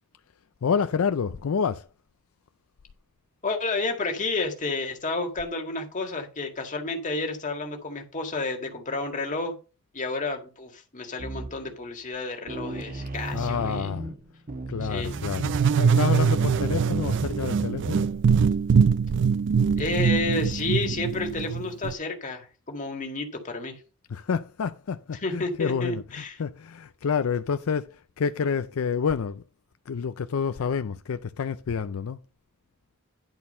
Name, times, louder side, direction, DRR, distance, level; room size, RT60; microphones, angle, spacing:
voice 1, 0.6-1.9 13.3-14.1 14.7-18.1 24.1-29.4 29.9-32.2, left 6 dB, 75° left, 0.4 m, -28 dB
voice 2, 3.4-9.5 9.9-13.9 14.8-15.1 19.8-23.8 25.2-26.4, left 3 dB, 35° left, 1.9 m, -31 dB
sound 1, 11.2-11.8 12.1-12.2 12.5-17.8, right 2 dB, 40° right, 1.2 m, -36 dB
sound 2, 15.1-21.9, right 6 dB, 60° right, 0.4 m, -23 dB
10.5 x 4.3 x 5.5 m
head